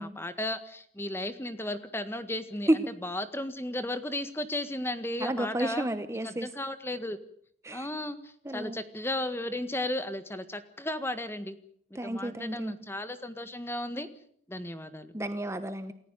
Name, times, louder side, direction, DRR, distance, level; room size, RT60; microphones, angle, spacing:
voice 1, 0.0-5.9 6.2-7.2 7.7-11.6 11.9-14.1 14.5-15.1, left 1 dB, 15° left, 11 dB, 1.7 m, -35 dB
voice 2, 5.2-6.5 7.6-7.9 8.4-8.8 11.9-12.7 15.1-15.9, right 1 dB, 15° right, 10 dB, 1.1 m, -31 dB
28.5 x 15.0 x 9.2 m, 0.63 s
head